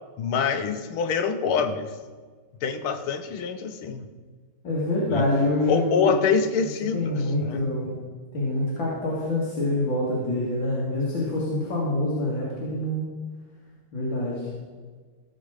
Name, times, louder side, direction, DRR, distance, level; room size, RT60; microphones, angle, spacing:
voice 1, 0.2-1.9 2.6-4.1 5.1-5.3 5.7-7.6, left 6 dB, 90° left, 8 dB, 1.8 m, -25 dB
voice 2, 4.6-6.2 6.9-8.0 8.3-13.1 13.9-14.4, left 1 dB, 65° left, -5 dB, 3.0 m, -26 dB
16.0 x 7.4 x 5.0 m, 1.5 s
omnidirectional pair, 2.3 m